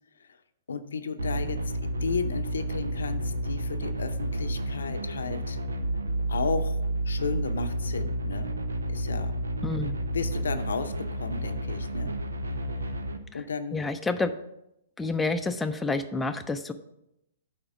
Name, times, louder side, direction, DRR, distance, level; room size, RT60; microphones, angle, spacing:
voice 1, 0.7-5.6 6.3-6.8 7.1-8.5 8.9-9.3 10.1-12.1 12.7-13.0 13.3-13.8, left 4 dB, 70° left, 9 dB, 0.6 m, -34 dB
sound 1, 1.2-13.2, right 1 dB, 80° right, 0.7 m, -31 dB
voice 2, 9.6-10.0 13.3-13.4 13.7-14.3 15.0-16.7, left 3 dB, 10° left, 6 dB, 0.5 m, -29 dB
8.6 x 4.7 x 6.0 m, 0.83 s
figure-of-eight pair, 115°, 0 cm